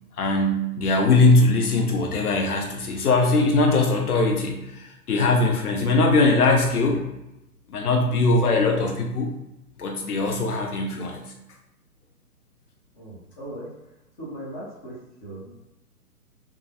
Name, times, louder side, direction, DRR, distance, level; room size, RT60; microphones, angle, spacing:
voice 1, 0.2-7.1 7.7-9.3 9.8-11.2, left 2 dB, 70° left, 2 dB, 0.7 m, -21 dB
voice 2, 12.9-13.7 14.2-15.6, right 1 dB, 20° left, -8 dB, 0.7 m, -38 dB
2.2 x 2.0 x 2.6 m, 0.93 s
figure-of-eight pair, 130°, 47 cm